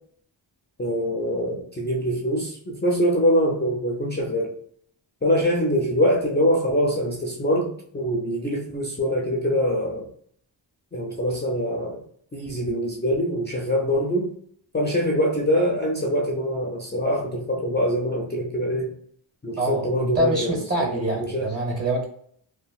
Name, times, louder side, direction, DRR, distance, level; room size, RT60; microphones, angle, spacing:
voice 1, 0.8-4.6 5.2-10.1 10.9-12.0 12.3-14.3 14.7-18.9 19.4-21.5, equal, 25° left, -1 dB, 0.4 m, -24 dB
voice 2, 19.6-22.0, right 1 dB, 30° right, 1 dB, 1.0 m, -25 dB
3.0 x 2.1 x 2.3 m, 0.64 s
wide cardioid pair, 90°, 48 cm